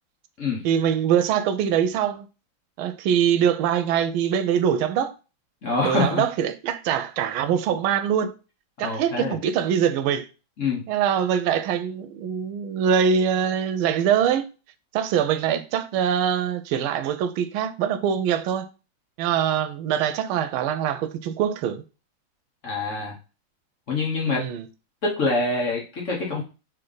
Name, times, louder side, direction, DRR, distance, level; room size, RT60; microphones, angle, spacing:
voice 1, 0.6-2.3 2.8-5.1 5.8-8.3 8.8-10.3 10.9-14.5 14.9-18.7 19.2-21.8 24.3-24.6, right 8 dB, 85° right, 1.4 m, -23 dB
voice 2, 5.6-6.2 8.8-9.4 10.6-10.8 22.6-23.2 23.9-24.4 25.0-26.4, left 3 dB, 45° left, 1.2 m, -25 dB
3.6 x 3.4 x 3.8 m
omnidirectional pair, 2.2 m